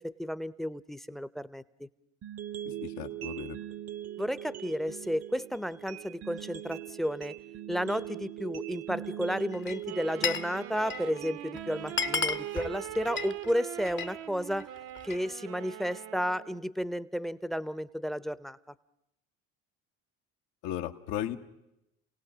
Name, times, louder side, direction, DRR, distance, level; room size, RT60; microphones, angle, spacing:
voice 1, 0.0-1.9 4.2-7.3 7.7-14.7 15.0-18.6, equal, ahead, 18 dB, 0.7 m, -32 dB
sound 1, 2.2-14.2, right 12 dB, 45° right, 0.8 m, -42 dB
voice 2, 2.8-3.6 20.6-21.4, left 11 dB, 70° left, 9 dB, 1.2 m, -35 dB
Glass, 9.5-10.5 10.8-11.2 11.6-11.7 11.9-14.2 14.5-15.3, left 6 dB, 35° left, 0.9 m, -33 dB
Wind instrument woodwind instrument, 9.8-16.7, right 12 dB, 70° right, 1.0 m, -42 dB
29.5 x 17.5 x 6.1 m, 0.85 s
hypercardioid pair, 65°, 35 cm